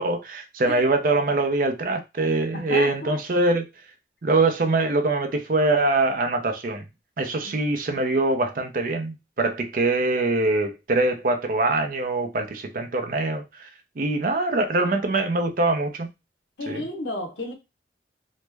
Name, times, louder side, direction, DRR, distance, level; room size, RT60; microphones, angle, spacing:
voice 1, 0.0-3.6 4.2-6.8 7.2-13.7 14.0-16.1 16.7-16.8, right 2 dB, 50° right, 0.5 m, -23 dB
voice 2, 2.5-3.2 7.4-7.7 16.6-17.5, left 2 dB, 80° left, 0.9 m, -32 dB
3.0 x 2.1 x 3.3 m
head